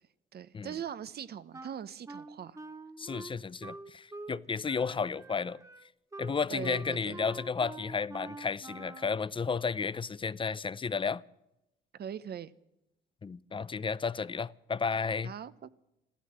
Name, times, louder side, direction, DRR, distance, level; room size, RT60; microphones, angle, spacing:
voice 1, 0.3-2.6 6.5-7.2 11.9-12.5 15.2-15.7, right 9 dB, 55° right, 0.8 m, -41 dB
Wind instrument woodwind instrument, 1.5-4.4 4.7-9.2, right 2 dB, 15° right, 1.0 m, -46 dB
voice 2, 3.0-5.6 6.2-11.2 13.2-15.3, left 5 dB, 25° left, 0.5 m, -33 dB
14.5 x 13.0 x 7.6 m
cardioid pair, 90°, 20 cm